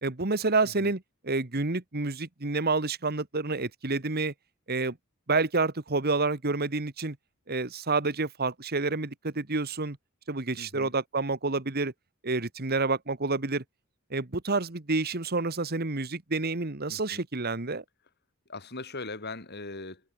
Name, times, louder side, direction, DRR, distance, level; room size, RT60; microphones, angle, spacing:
voice 1, 0.0-4.3 4.7-5.0 5.3-7.2 7.5-10.0 10.3-11.9 12.2-13.6 14.1-17.8, right 3 dB, 45° right, 1.6 m, -29 dB
voice 2, 10.5-10.9 16.9-17.2 18.5-20.0, left 3 dB, 50° left, 4.3 m, -40 dB
head